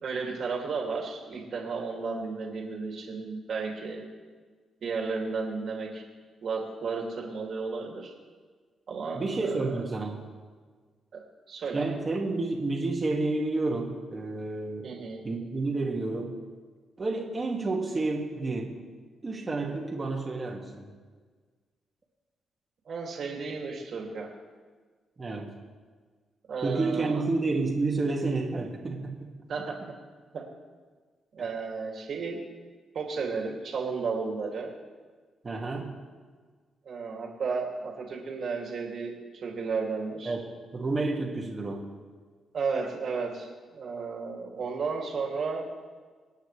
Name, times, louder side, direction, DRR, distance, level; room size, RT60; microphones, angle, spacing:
voice 1, 0.0-4.0 4.8-6.0 6.4-8.1 8.9-9.8 11.1-11.2 11.5-11.9 14.8-15.2 22.9-24.3 26.5-27.2 29.5-29.8 30.3-30.4 31.3-32.4 32.9-34.7 36.8-40.3 42.5-45.6, right 4 dB, 55° right, 0 dB, 2.6 m, -33 dB
voice 2, 9.1-10.2 11.7-15.0 15.2-16.4 17.0-18.7 19.2-20.9 25.2-25.5 26.6-29.3 35.4-35.9 40.3-40.4 40.7-41.8, right 3 dB, 30° right, 0 dB, 2.1 m, -30 dB
26.5 x 9.1 x 3.3 m, 1.5 s
cardioid pair, 120°, 0 cm